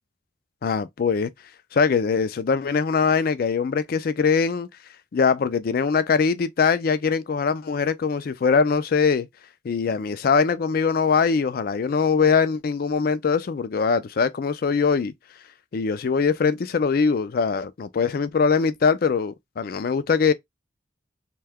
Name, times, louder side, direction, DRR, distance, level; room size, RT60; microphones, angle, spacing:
voice 1, 0.6-1.3 1.7-4.7 5.1-9.3 9.6-15.1 15.7-20.3, left 5 dB, 55° left, 0.4 m, -22 dB
2.7 x 2.2 x 3.4 m
head